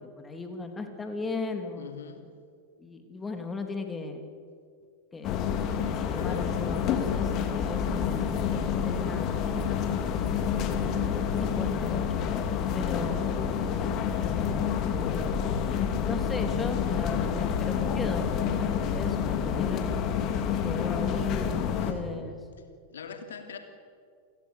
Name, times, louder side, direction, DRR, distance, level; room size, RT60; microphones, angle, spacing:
voice 1, 0.0-1.9 2.8-4.2 5.1-5.4 6.0-9.9 10.6-10.9 11.4-12.3 12.7-13.5 14.1-14.6 16.0-19.2 19.4-20.1 20.5-21.6 21.9-22.4, left 3 dB, 15° left, 5 dB, 3.2 m, -37 dB
voice 2, 1.8-2.3 6.1-6.4 10.4-10.9 21.8-22.4 22.9-23.6, left 6 dB, 65° left, 6 dB, 3.0 m, -44 dB
sound 1, 5.2-21.9, left 7 dB, 35° left, 2.6 m, -28 dB
29.0 x 17.0 x 8.5 m, 2.2 s
figure-of-eight pair, 90°, 0 cm